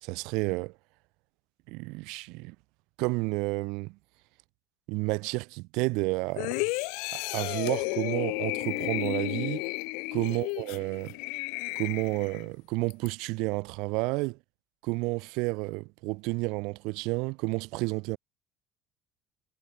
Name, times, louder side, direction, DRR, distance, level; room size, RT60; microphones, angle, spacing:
voice 1, 0.0-0.7 1.7-2.6 3.0-4.0 4.9-6.7 7.1-9.6 10.1-11.2 11.8-14.4 14.8-18.2, right 26 dB, 75° right, 0.6 m, -31 dB
sound 1, 6.4-12.5 12.9-13.1, left 33 dB, 90° left, 1.3 m, -33 dB
cardioid pair, 175°, 0 cm